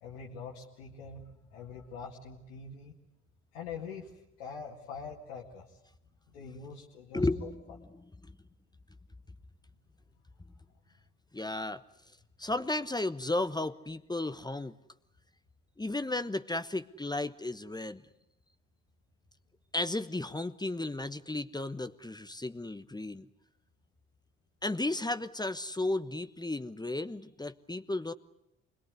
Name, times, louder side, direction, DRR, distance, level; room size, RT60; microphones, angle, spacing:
voice 1, 0.0-2.9 3.5-5.8 6.3-7.5, left 5 dB, 85° left, -5 dB, 2.2 m, -44 dB
voice 2, 7.1-8.3 11.3-11.8 12.4-14.7 15.8-18.0 19.7-23.3 24.6-28.1, left 2 dB, 10° left, 11 dB, 1.1 m, -34 dB
26.0 x 21.5 x 9.6 m, 0.87 s
hypercardioid pair, 50°, 33 cm